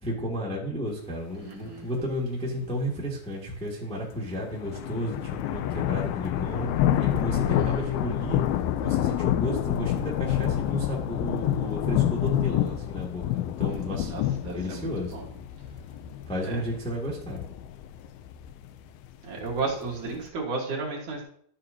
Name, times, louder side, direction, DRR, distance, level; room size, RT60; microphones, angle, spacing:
voice 1, 0.0-6.7 7.0-8.4 8.8-14.1 14.5-15.1 16.3-17.4, equal, 5° left, -3 dB, 1.2 m, -32 dB
voice 2, 1.4-1.8 7.5-7.6 14.1-15.2 16.4-16.6 19.2-21.2, right 4 dB, 55° right, -2 dB, 2.9 m, -33 dB
sound 1, 4.3-20.3, left 12 dB, 80° left, 2.4 m, -28 dB
12.5 x 7.9 x 2.9 m, 0.63 s
omnidirectional pair, 4.6 m